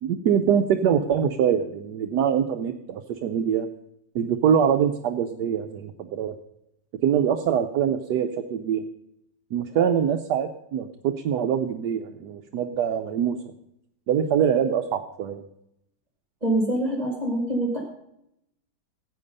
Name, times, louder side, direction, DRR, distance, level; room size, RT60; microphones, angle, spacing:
voice 1, 0.0-3.7 4.1-6.4 7.0-8.8 9.5-13.4 14.1-15.4, right 8 dB, 75° right, 4 dB, 1.3 m, -24 dB
voice 2, 16.4-17.9, right 1 dB, 20° right, 0 dB, 2.3 m, -25 dB
15.0 x 8.7 x 5.4 m, 0.81 s
omnidirectional pair, 1.8 m